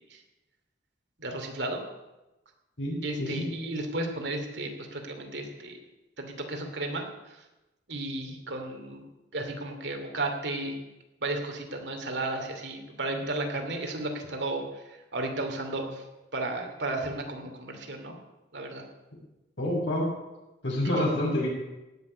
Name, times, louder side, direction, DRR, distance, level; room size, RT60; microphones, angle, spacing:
voice 1, 1.2-1.8 3.0-5.8 6.2-7.4 7.9-9.0 9.3-10.7 11.2-16.0 16.3-18.2 18.5-18.8, right 2 dB, 70° right, 3 dB, 2.7 m, -33 dB
voice 2, 2.8-3.5 19.6-20.1 20.6-21.5, left 1 dB, 85° left, -3 dB, 6.4 m, -28 dB
17.0 x 6.7 x 9.7 m, 1.0 s
head